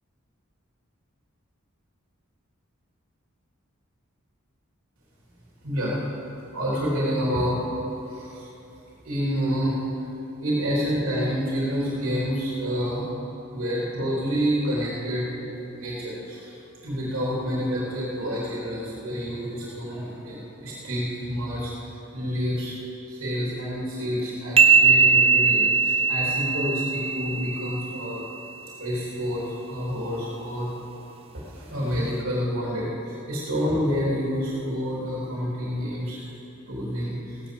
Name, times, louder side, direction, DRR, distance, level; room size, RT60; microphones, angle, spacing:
voice 1, 5.6-6.0 6.5-7.6 8.0-8.5 9.0-10.1 10.4-13.0 13.5-16.5 16.8-22.8 23.1-28.2 28.8-30.7 31.3-36.3 36.7-37.4, equal, 75° right, -6 dB, 3.4 m, -28 dB
sound 1, 24.6-28.1, right 5 dB, 25° right, 0.6 m, -20 dB
15.5 x 9.9 x 6.9 m, 2.9 s
head